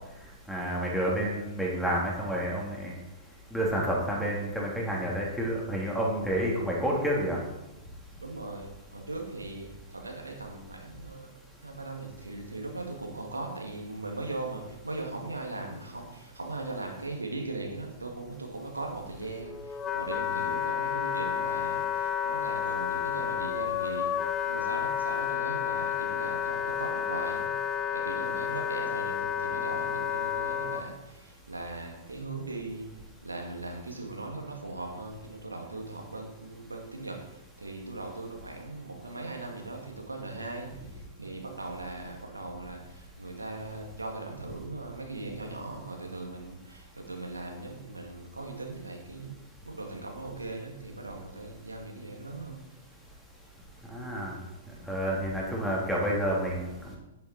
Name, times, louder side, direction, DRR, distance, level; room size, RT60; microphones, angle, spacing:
voice 1, 0.5-2.9 3.5-7.4 53.9-54.3 54.9-57.0, equal, ahead, -3 dB, 3.2 m, -29 dB
voice 2, 8.2-11.4 11.6-24.1 24.5-27.5 27.9-32.9 33.2-49.3 49.6-52.6, right 2 dB, 80° right, 1 dB, 2.4 m, -39 dB
Wind instrument woodwind instrument, 19.2-30.8, left 9 dB, 20° left, 1.0 m, -31 dB
10.0 x 8.9 x 4.5 m, 0.93 s
figure-of-eight pair, 110°, 0 cm